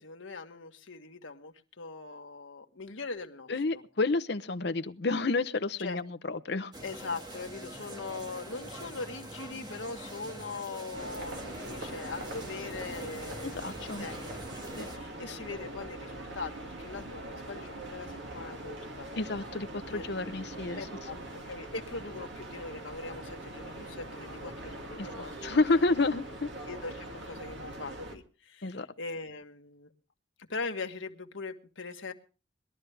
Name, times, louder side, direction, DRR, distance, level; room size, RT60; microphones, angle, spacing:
voice 1, 0.0-3.8 5.8-6.0 6.8-19.1 20.0-20.1 20.8-25.5 26.7-29.9 30.5-32.1, left 3 dB, 85° left, 1.5 m, -41 dB
voice 2, 3.5-6.7 13.4-14.1 14.8-14.9 15.2-15.4 19.2-20.9 25.0-26.5 28.6-28.9, left 3 dB, 60° left, 0.8 m, -30 dB
sound 1, 6.7-15.0, right 1 dB, 20° right, 1.9 m, -44 dB
sound 2, 10.9-28.2, right 1 dB, 70° right, 2.4 m, -42 dB
21.0 x 12.5 x 3.4 m
head